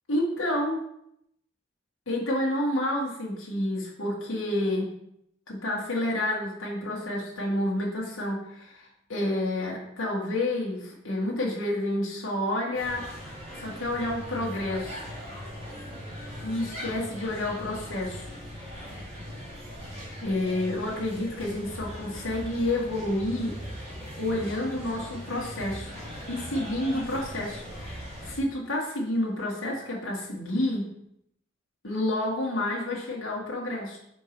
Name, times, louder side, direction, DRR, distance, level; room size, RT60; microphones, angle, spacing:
voice 1, 0.1-0.8 2.1-4.9 5.5-13.1 13.5-15.1 16.4-18.3 20.2-23.6 24.2-25.9 26.3-30.9 31.8-34.0, left 1 dB, 90° left, -4 dB, 1.6 m, -29 dB
sound 1, 12.7-28.4, equal, 30° right, 2.1 m, -40 dB
4.6 x 4.5 x 6.0 m, 0.75 s
head